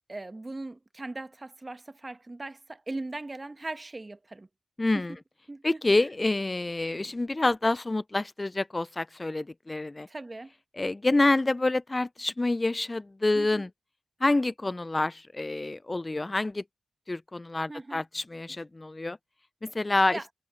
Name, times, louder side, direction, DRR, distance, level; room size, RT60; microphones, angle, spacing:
voice 1, 0.1-4.5 4.9-5.1 5.5-6.1 10.1-10.5 13.3-13.6 17.7-18.0 20.1-20.2, right 2 dB, 30° right, 1.4 m, -39 dB
voice 2, 4.8-5.1 5.6-10.1 10.8-13.7 14.2-16.6 17.1-19.2 19.6-20.2, left 2 dB, 30° left, 0.3 m, -27 dB
cardioid pair, 50°, 0 cm